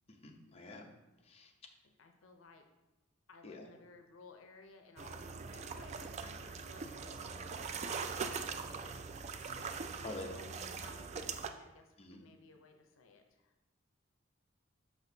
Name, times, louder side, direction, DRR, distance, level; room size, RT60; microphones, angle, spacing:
voice 1, 0.1-0.9 1.2-1.5 3.4-3.7 10.0-10.3 12.0-12.2, left 2 dB, 30° left, 1 dB, 0.6 m, -47 dB
voice 2, 2.0-2.6 3.3-8.5 9.7-13.5, left 4 dB, 70° left, 5 dB, 0.6 m, -59 dB
sound 1, 5.0-11.5, right 5 dB, 35° right, 0.3 m, -42 dB
6.2 x 5.8 x 2.7 m, 1.0 s
head